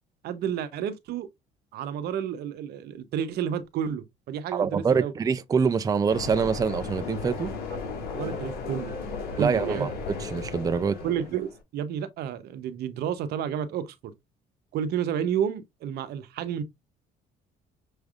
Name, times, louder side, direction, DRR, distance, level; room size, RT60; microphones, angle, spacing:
voice 1, 0.2-1.3 1.7-5.1 8.1-8.9 9.4-9.9 11.0-14.1 14.7-16.6, right 9 dB, 75° right, 0.8 m, -31 dB
voice 2, 4.5-7.5 9.4-9.9 10.2-10.9, right 5 dB, 20° right, 0.4 m, -25 dB
sound 1, 6.1-11.6, left 4 dB, 65° left, 2.0 m, -35 dB
6.3 x 3.3 x 2.4 m
cardioid pair, 110°, 17 cm